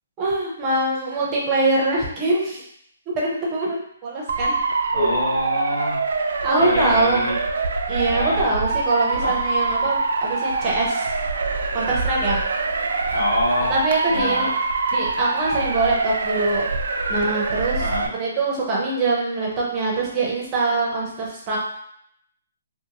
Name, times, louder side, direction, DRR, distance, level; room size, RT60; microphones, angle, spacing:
voice 1, 0.2-2.6 3.1-4.5 4.9-5.2 6.4-7.3 7.9-11.1 11.7-12.4 13.7-14.5 14.9-16.7 17.1-17.9 18.1-21.6, right 2 dB, 20° right, -4 dB, 0.5 m, -23 dB
Motor vehicle (road) / Siren, 4.3-18.1, right 3 dB, 70° right, 0.3 m, -24 dB
voice 2, 4.9-6.1 6.6-7.4 8.1-8.5 9.1-9.4 13.1-13.8 14.1-14.5 17.8-18.1, left 1 dB, 90° left, -4 dB, 1.1 m, -26 dB
2.6 x 2.5 x 2.7 m, 0.72 s
hypercardioid pair, 175°, 0 cm